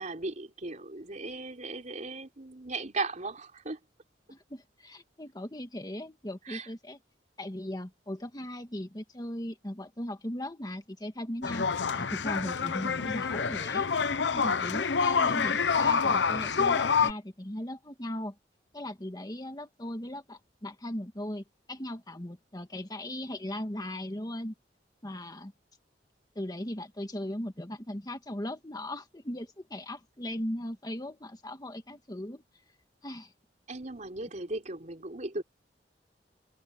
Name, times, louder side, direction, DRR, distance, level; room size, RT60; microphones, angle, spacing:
voice 1, 0.0-3.8 6.5-6.7 33.7-35.4, right 3 dB, 45° right, 3.8 m, -37 dB
voice 2, 4.3-7.0 7.4-11.7 12.0-13.9 14.3-18.3 18.7-24.5 25.0-25.5 26.3-32.4 33.0-33.3, left 1 dB, 20° left, 1.6 m, -38 dB
sound 1, 11.4-17.1, left 5 dB, 75° left, 0.8 m, -27 dB
head